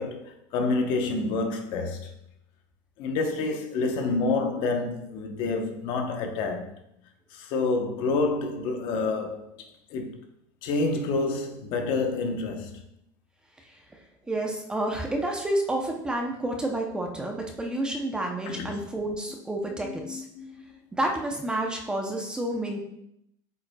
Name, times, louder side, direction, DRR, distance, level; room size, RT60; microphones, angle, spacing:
voice 1, 0.0-2.1 3.0-6.7 7.3-9.6 9.9-10.2 10.6-12.8 18.5-18.8 19.8-20.5, left 3 dB, 55° left, 0.9 m, -28 dB
voice 2, 14.3-20.2 20.9-22.8, right 1 dB, 10° right, 0.6 m, -29 dB
7.9 x 5.2 x 2.3 m
cardioid pair, 155°, 10 cm